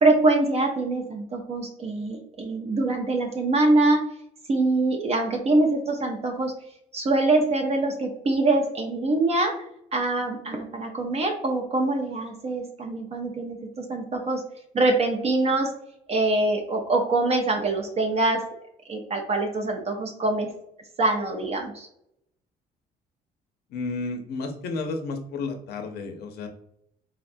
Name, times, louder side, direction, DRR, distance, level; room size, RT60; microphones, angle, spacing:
voice 1, 0.0-4.0 4.5-6.5 6.9-9.5 9.9-14.4 14.7-15.7 16.1-18.4 18.9-20.5 21.0-21.9, right 2 dB, 40° right, 3 dB, 0.5 m, -24 dB
voice 2, 23.7-26.5, left 3 dB, 70° left, 4 dB, 0.5 m, -32 dB
3.6 x 2.2 x 2.5 m, 0.74 s
cardioid pair, 110°, 17 cm